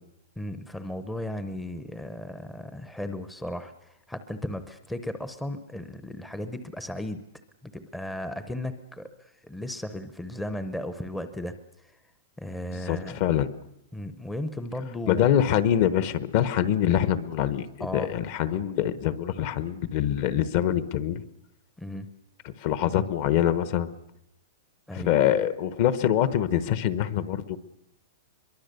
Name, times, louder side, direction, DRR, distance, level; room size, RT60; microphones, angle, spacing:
voice 1, 0.4-7.2 7.6-11.9 12.4-13.2 13.9-15.3 17.8-18.1 21.8-22.1 24.9-25.1, left 1 dB, 5° left, 9 dB, 0.7 m, -35 dB
voice 2, 12.9-13.5 15.1-21.2 22.4-23.9 24.9-27.6, left 10 dB, 40° left, 14 dB, 1.0 m, -24 dB
24.0 x 22.5 x 6.8 m, 0.88 s
supercardioid pair, 175°, 0 cm